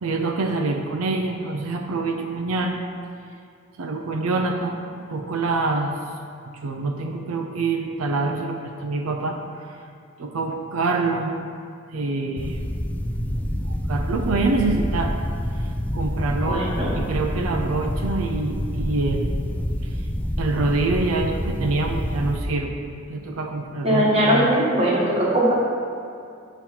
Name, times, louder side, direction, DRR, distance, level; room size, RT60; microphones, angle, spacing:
voice 1, 0.0-2.8 3.8-4.8 5.1-5.9 6.6-9.8 10.2-11.3 11.9-12.6 13.6-15.1 15.6-19.4 19.8-19.9 20.4-22.7 23.1-24.5, right 3 dB, 85° right, 3 dB, 0.5 m, -26 dB
sound 1, 12.4-22.4, equal, 5° left, 0.4 m, -27 dB
voice 2, 16.4-16.9 23.8-25.5, right 1 dB, 30° right, -5 dB, 1.3 m, -20 dB
8.3 x 3.0 x 5.6 m, 2.4 s
head